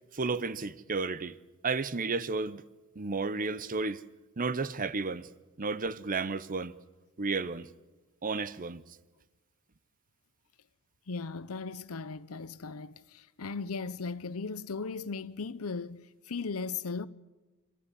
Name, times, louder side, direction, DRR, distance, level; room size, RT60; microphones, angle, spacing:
voice 1, 0.1-1.3 1.6-2.6 3.0-4.0 4.4-5.3 5.6-6.8 7.2-7.7 8.2-8.8, right 4 dB, 40° right, 0.8 m, -32 dB
voice 2, 11.1-17.1, left 4 dB, 75° left, 0.7 m, -37 dB
26.0 x 14.0 x 9.9 m
head